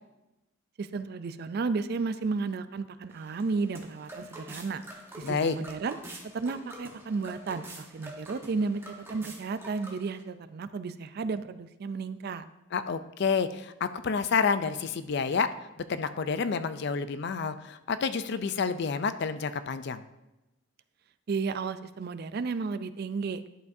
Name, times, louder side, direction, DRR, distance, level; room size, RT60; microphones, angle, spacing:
voice 1, 0.8-4.8 5.2-6.0 6.3-8.8 9.1-12.4 21.3-23.5, right 4 dB, 50° right, 12 dB, 0.4 m, -33 dB
sound 1, 3.1-10.2, right 1 dB, 10° right, 1.1 m, -46 dB
voice 2, 5.2-5.6 12.7-15.5 15.9-20.0, left 5 dB, 55° left, 12 dB, 0.4 m, -29 dB
11.0 x 7.0 x 2.6 m, 0.97 s
head